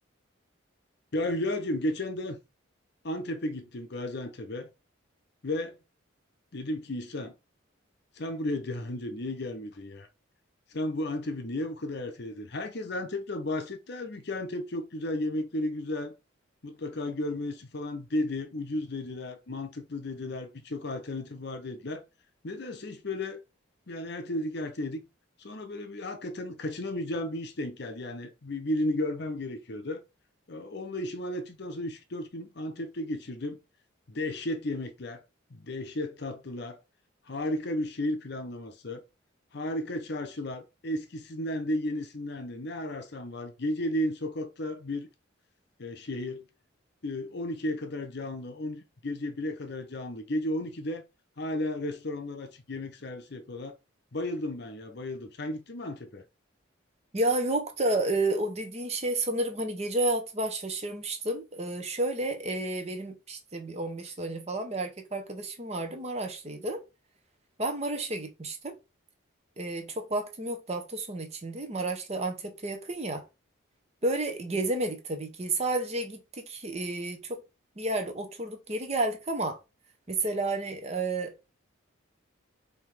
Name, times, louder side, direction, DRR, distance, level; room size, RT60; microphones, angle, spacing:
voice 1, 1.1-2.4 3.0-4.7 5.4-5.8 6.5-7.4 8.2-10.1 10.7-16.1 16.6-22.0 22.4-23.4 23.9-25.0 25.4-30.0 30.5-33.6 34.1-35.2 35.5-36.8 37.3-39.0 39.5-45.1 45.8-46.5 47.0-51.0 51.4-53.7 54.1-56.2, left 1 dB, 55° left, 0.7 m, -34 dB
voice 2, 57.1-66.8 67.6-68.7 69.6-73.2 74.0-77.4 77.8-79.6 80.1-81.3, right 2 dB, 30° right, 0.8 m, -31 dB
3.9 x 2.8 x 4.7 m
head